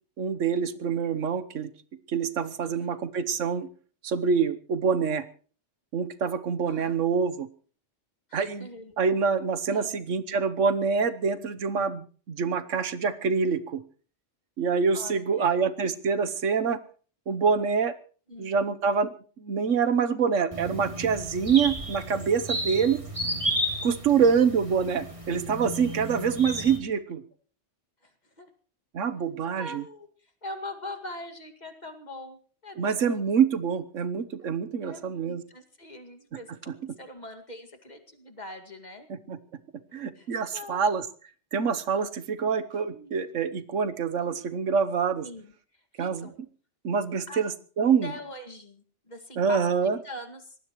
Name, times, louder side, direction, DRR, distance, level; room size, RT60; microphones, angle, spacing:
voice 1, 0.2-1.7 2.1-3.7 4.0-5.3 5.9-7.5 8.3-8.7 9.0-13.8 14.6-16.8 17.3-17.9 18.4-23.0 23.8-27.2 28.9-29.8 32.8-35.4 39.1-39.4 39.9-41.1 41.5-45.3 46.0-46.3 46.8-47.5 47.8-48.1 49.4-50.0, right 6 dB, 85° right, 11 dB, 1.4 m, -26 dB
voice 2, 2.6-3.0 6.7-7.0 8.3-9.0 9.7-10.0 14.9-15.6 18.3-18.5 28.0-28.5 29.6-33.2 34.8-39.1 40.2-40.9 42.9-43.2 45.2-46.4 47.3-47.4 48.0-50.6, left 1 dB, 35° left, 5 dB, 2.3 m, -43 dB
sound 1, 20.5-26.8, equal, 25° right, 3.0 m, -33 dB
24.0 x 18.5 x 3.1 m, 0.42 s
omnidirectional pair, 1.2 m